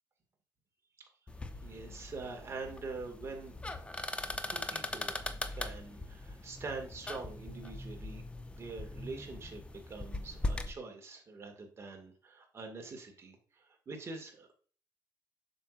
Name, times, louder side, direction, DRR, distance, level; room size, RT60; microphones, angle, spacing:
sound 1, 1.3-10.7, left 2 dB, 15° left, 0.7 m, -40 dB
voice 1, 1.6-3.6 4.5-5.2 5.6-8.2 8.5-14.5, right 3 dB, 35° right, 3 dB, 2.0 m, -44 dB
7.6 x 6.6 x 2.5 m, 0.41 s
cardioid pair, 120°, 8 cm